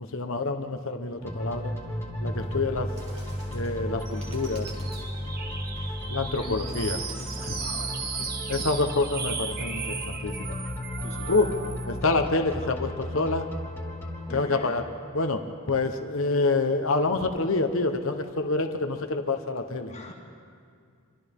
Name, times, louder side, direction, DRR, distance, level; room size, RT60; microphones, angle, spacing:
voice 1, 0.0-1.7 2.2-2.9 3.5-4.7 6.1-7.0 7.4-7.6 8.5-10.6 11.3-11.5 11.8-13.5 14.3-14.8 15.1-19.9, left 3 dB, 65° left, 6 dB, 1.2 m, -27 dB
Techno dark pop minitrack, 1.2-15.9, equal, 10° left, 2.5 m, -35 dB
Bird, 2.4-8.0, right 1 dB, 30° right, 3.4 m, -52 dB
sound 1, 4.0-12.0, right 5 dB, 45° right, 1.5 m, -36 dB
voice 2, 6.4-6.9 7.6-8.3 11.0-11.3 12.6-12.7 14.3-14.8 19.9-20.1, left 2 dB, 35° left, -1 dB, 2.3 m, -43 dB
28.0 x 25.0 x 3.8 m, 2.2 s
head